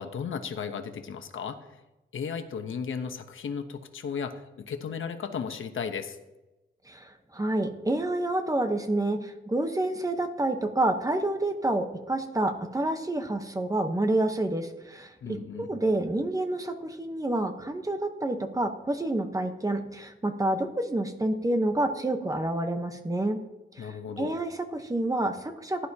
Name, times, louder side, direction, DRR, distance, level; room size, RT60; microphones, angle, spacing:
voice 1, 0.0-1.8 2.1-6.2 15.2-15.8 23.8-24.4, left 6 dB, 80° left, 7 dB, 1.0 m, -35 dB
voice 2, 6.9-23.4 23.7-25.9, right 1 dB, 15° right, 6 dB, 1.0 m, -28 dB
16.0 x 11.5 x 2.9 m, 1.0 s
wide cardioid pair, 145°, 20 cm